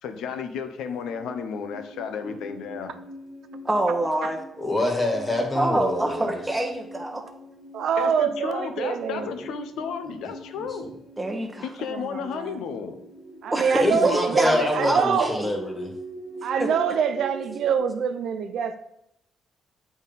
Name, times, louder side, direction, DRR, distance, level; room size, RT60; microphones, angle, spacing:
voice 1, 0.0-2.9 8.0-10.9 11.6-13.0 13.9-14.1, left 6 dB, 85° left, 7 dB, 0.6 m, -33 dB
sound 1, 0.6-17.8, right 1 dB, 40° left, 1.8 m, -43 dB
voice 2, 3.6-4.4 5.5-7.2 11.2-11.6 13.5-15.5 16.6-16.7, right 1 dB, 15° right, 3 dB, 1.0 m, -25 dB
voice 3, 4.6-6.4 13.8-15.9, left 1 dB, 20° left, 2 dB, 1.6 m, -26 dB
voice 4, 7.7-9.3 11.9-12.6 13.4-15.3 16.4-18.8, right 7 dB, 70° right, 10 dB, 0.5 m, -25 dB
8.1 x 3.6 x 4.0 m, 0.82 s
cardioid pair, 90°, 0 cm